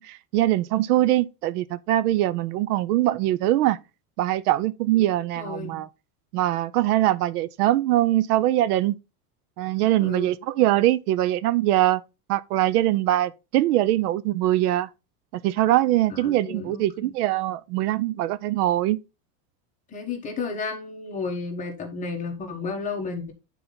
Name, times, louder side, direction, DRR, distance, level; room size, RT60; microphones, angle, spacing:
voice 1, 0.0-3.8 4.2-5.9 6.3-8.9 9.6-12.0 12.3-14.9 15.3-19.0, right 14 dB, 85° right, 0.6 m, -22 dB
voice 2, 5.4-5.8 10.0-10.3 16.1-17.1 19.9-23.3, left 4 dB, 15° left, 1.1 m, -32 dB
9.1 x 4.1 x 3.8 m
supercardioid pair, 165°, 44 cm